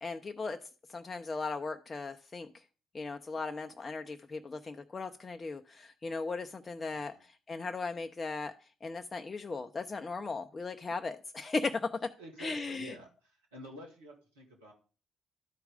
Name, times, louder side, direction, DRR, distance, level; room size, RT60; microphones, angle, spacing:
voice 1, 0.0-0.6 0.9-2.5 2.9-8.5 8.8-12.1 12.4-12.9, left 3 dB, 30° left, 6 dB, 0.6 m, -37 dB
voice 2, 6.9-7.2 12.2-14.7, equal, 85° right, 0 dB, 2.0 m, -49 dB
11.5 x 4.7 x 5.1 m, 0.37 s
figure-of-eight pair, 45°, 0 cm